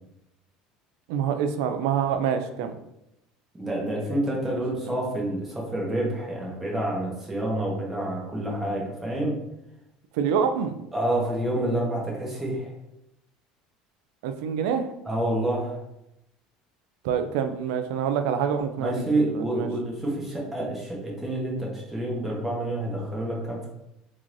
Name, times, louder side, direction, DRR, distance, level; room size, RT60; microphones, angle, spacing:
voice 1, 1.1-2.8 4.4-4.6 4.8-4.9 10.1-10.8 14.2-14.9 17.0-19.7, right 7 dB, 85° right, 8 dB, 0.3 m, -26 dB
voice 2, 3.5-9.4 10.9-12.7 15.0-15.8 18.8-23.7, right 1 dB, 10° right, -3 dB, 1.1 m, -28 dB
3.7 x 3.0 x 2.5 m, 0.84 s
cardioid pair, 130°, 2 cm